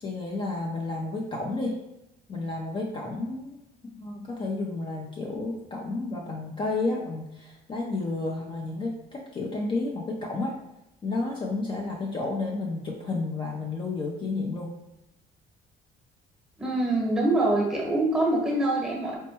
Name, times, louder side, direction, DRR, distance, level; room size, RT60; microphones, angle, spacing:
voice 1, 0.0-1.8 2.3-3.6 3.8-10.6 11.0-14.7, left 3 dB, 30° left, -1 dB, 0.5 m, -31 dB
voice 2, 16.6-19.2, right 2 dB, 5° right, -2 dB, 1.0 m, -24 dB
4.4 x 2.1 x 2.8 m, 0.89 s
cardioid pair, 110°, 17 cm